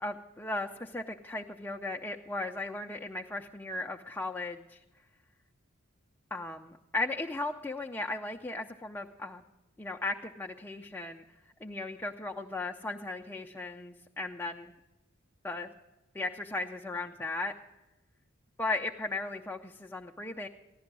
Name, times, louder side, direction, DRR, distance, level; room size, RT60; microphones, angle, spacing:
voice 1, 0.0-4.8 6.3-9.4 9.8-11.2 11.6-14.7 15.4-15.7 16.1-17.5 18.6-20.5, left 2 dB, 10° left, 1 dB, 0.5 m, -36 dB
15.5 x 11.5 x 6.0 m, 1.0 s
head